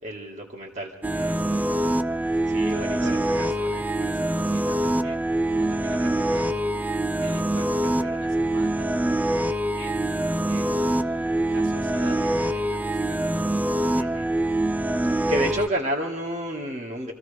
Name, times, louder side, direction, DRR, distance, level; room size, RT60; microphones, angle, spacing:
voice 1, 0.0-1.0 2.5-3.3 13.9-14.3 15.3-17.1, right 1 dB, 40° right, 1.6 m, -30 dB
sound 1, 1.0-15.7, right 1 dB, 10° right, 0.4 m, -24 dB
voice 2, 1.1-6.7 7.2-9.0 9.7-13.7, right 2 dB, 75° right, 4.0 m, -44 dB
27.0 x 15.0 x 3.3 m
head